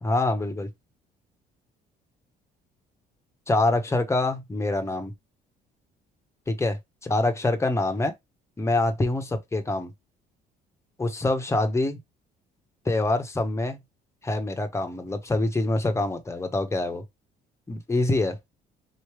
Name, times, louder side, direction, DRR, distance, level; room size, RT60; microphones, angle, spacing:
voice 1, 0.0-0.7 3.5-5.1 6.5-6.8 7.0-8.1 8.6-9.9 11.0-12.0 12.8-13.8 14.2-17.0 17.7-18.4, left 2 dB, 15° left, 1.1 m, -25 dB
4.3 x 3.2 x 3.1 m
cardioid pair, 110°, 17 cm